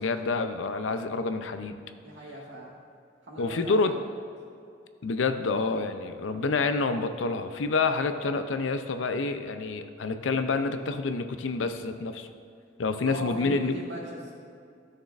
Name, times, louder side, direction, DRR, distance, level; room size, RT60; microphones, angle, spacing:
voice 1, 0.0-1.8 3.4-3.9 5.0-12.3 12.8-13.7, left 4 dB, 85° left, 9 dB, 0.5 m, -28 dB
voice 2, 2.0-2.8 3.2-4.0 8.0-8.2 13.0-14.3, right 1 dB, 75° right, -3 dB, 1.7 m, -39 dB
13.0 x 6.4 x 2.5 m, 2.4 s
head